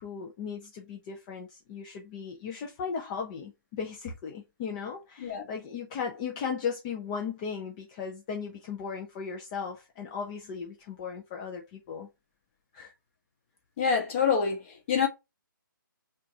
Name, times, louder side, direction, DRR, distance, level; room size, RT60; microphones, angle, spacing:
voice 1, 0.0-12.1 12.7-12.9, left 6 dB, 20° left, 0.5 m, -37 dB
voice 2, 13.8-15.1, left 6 dB, 40° left, 1.4 m, -26 dB
4.4 x 2.4 x 2.7 m
hypercardioid pair, 155°, 11 cm